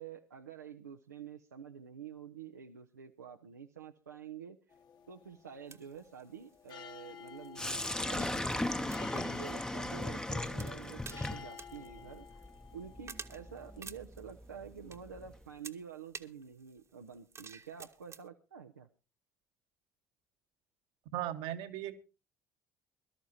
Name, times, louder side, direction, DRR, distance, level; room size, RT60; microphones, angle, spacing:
voice 1, 0.0-4.8 5.1-12.4 12.7-18.9, right 7 dB, 85° right, 3 dB, 0.6 m, -48 dB
sound 1, 4.7-13.8, left 8 dB, 45° left, 1.5 m, -53 dB
sound 2, 5.7-18.3, right 5 dB, 30° right, 1.1 m, -53 dB
Sink (filling or washing), 7.6-15.5, left 1 dB, 10° left, 0.8 m, -38 dB
voice 2, 21.1-22.0, right 12 dB, 65° right, 9 dB, 1.2 m, -37 dB
22.5 x 13.0 x 2.7 m, 0.31 s
figure-of-eight pair, 55°, 9 cm